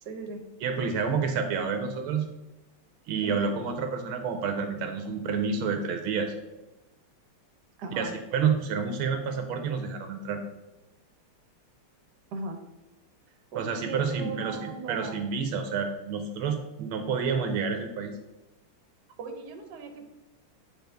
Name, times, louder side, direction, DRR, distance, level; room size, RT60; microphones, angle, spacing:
voice 1, 0.0-0.4 3.2-3.5 7.8-8.1 12.3-12.6 13.5-15.2 19.2-20.1, right 4 dB, 60° right, 5 dB, 1.3 m, -38 dB
voice 2, 0.6-2.3 3.1-6.3 8.0-10.4 13.5-18.1, right 5 dB, 80° right, 6 dB, 1.5 m, -29 dB
8.2 x 4.0 x 3.4 m, 1.0 s
omnidirectional pair, 2.4 m